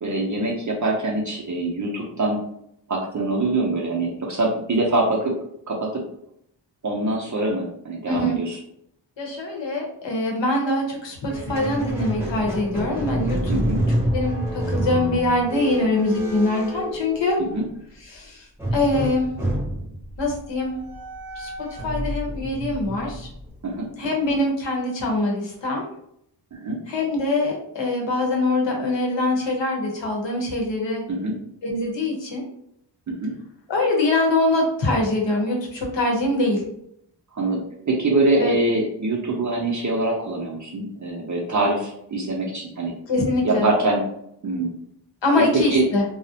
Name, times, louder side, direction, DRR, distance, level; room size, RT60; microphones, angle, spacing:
voice 1, 0.0-2.4 2.9-5.3 5.7-6.0 6.8-8.6 13.5-13.9 17.5-17.7 23.6-23.9 26.5-26.8 31.1-31.4 33.1-33.3 37.3-37.6 37.9-42.9 43.4-44.0 44.4-44.7 45.3-45.9, right 2 dB, 40° right, -2 dB, 0.5 m, -24 dB
voice 2, 8.1-8.4 9.2-13.4 14.1-17.4 18.1-18.4 18.7-19.3 20.2-20.8 21.4-23.3 24.0-25.9 26.9-31.0 31.6-32.4 33.7-36.6 38.4-38.5 43.1-43.7 45.2-46.0, left 2 dB, 70° left, 0 dB, 0.8 m, -23 dB
Squeak, 11.3-17.6 18.6-23.8, equal, 5° right, 0.7 m, -28 dB
2.3 x 2.0 x 2.7 m, 0.73 s
wide cardioid pair, 80°, 46 cm